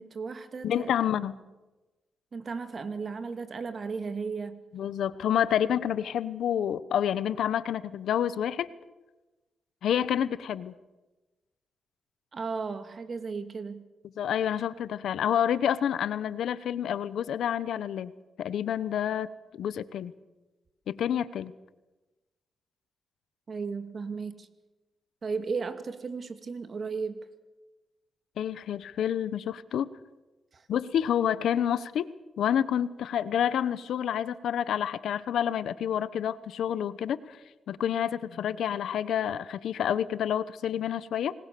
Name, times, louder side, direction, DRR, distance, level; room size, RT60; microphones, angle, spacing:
voice 1, 0.0-0.9 2.3-4.6 12.3-13.9 23.5-24.5 25.2-27.2 30.5-30.6, right 5 dB, 50° right, 9 dB, 2.6 m, -35 dB
voice 2, 0.6-1.4 4.7-8.7 9.8-10.7 14.2-18.1 18.4-19.3 19.6-20.1 20.9-21.5 28.4-29.9 30.7-32.1 32.4-37.4 37.7-41.3, left 9 dB, 85° left, 16 dB, 1.0 m, -28 dB
26.5 x 20.5 x 6.9 m, 1.1 s
cardioid pair, 80°, 0 cm